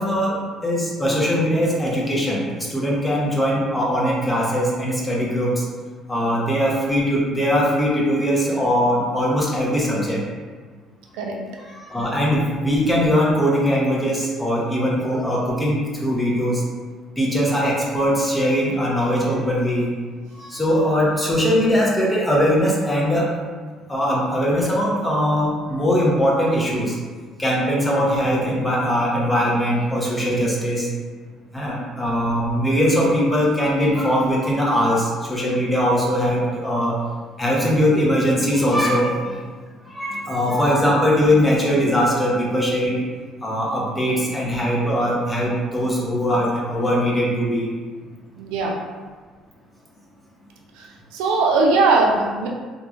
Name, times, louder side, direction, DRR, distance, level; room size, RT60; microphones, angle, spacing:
voice 1, 0.0-5.6 6.1-10.2 11.7-16.6 17.2-19.9 20.3-23.3 23.9-27.0 27.4-30.9 31.5-37.0 37.4-39.4 39.9-43.0 43.4-47.7, equal, 15° left, -4 dB, 0.7 m, -21 dB
voice 2, 48.4-48.7 50.8-50.9 51.1-52.5, right 3 dB, 90° right, 0 dB, 0.4 m, -19 dB
3.0 x 2.4 x 2.4 m, 1.5 s
cardioid pair, 95°, 0 cm